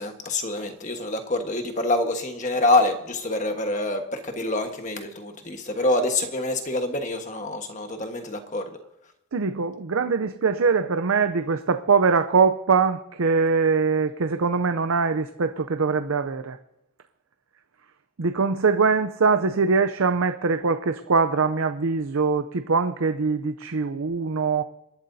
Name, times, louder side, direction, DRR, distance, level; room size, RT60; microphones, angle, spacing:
voice 1, 0.0-8.8, left 2 dB, 35° left, 5 dB, 1.4 m, -26 dB
voice 2, 9.3-16.6 18.2-24.6, right 5 dB, 75° right, 9 dB, 0.6 m, -22 dB
27.0 x 11.5 x 2.7 m, 0.89 s
head